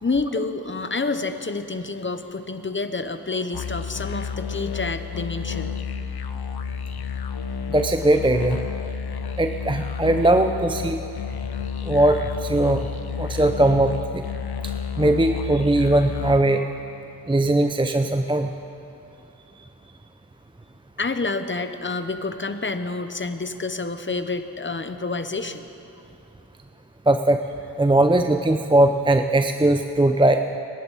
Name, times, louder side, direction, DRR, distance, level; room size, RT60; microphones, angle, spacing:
voice 1, 0.0-5.8 21.0-25.7, left 3 dB, 30° left, 9 dB, 0.9 m, -28 dB
sound 1, 3.5-16.4, left 6 dB, 70° left, 0.7 m, -31 dB
voice 2, 7.7-8.6 9.4-11.0 11.8-12.9 13.2-14.2 14.6-16.7 17.3-18.5 27.1-27.4 27.8-30.4, right 1 dB, 15° right, 7 dB, 0.6 m, -20 dB
25.0 x 11.0 x 4.2 m, 2.8 s
cardioid pair, 55°, 39 cm